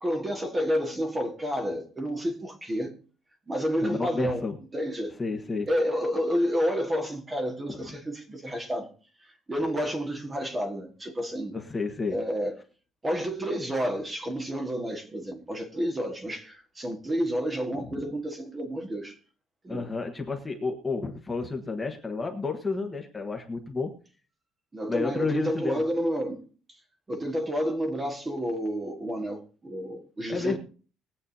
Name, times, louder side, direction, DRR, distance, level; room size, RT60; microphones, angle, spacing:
voice 1, 0.0-2.9 3.5-4.4 4.7-5.1 5.7-8.9 9.5-11.6 12.1-12.6 13.0-19.2 19.6-19.8 24.7-26.4 27.1-30.6, equal, 15° right, 1.6 m, -30 dB
voice 2, 3.8-4.6 5.2-5.7 7.7-7.8 11.5-12.2 17.9-18.0 19.7-23.9 24.9-25.8 30.3-30.6, left 4 dB, 15° left, 1.4 m, -31 dB
21.5 x 8.4 x 2.8 m
cardioid pair, 165°, 0 cm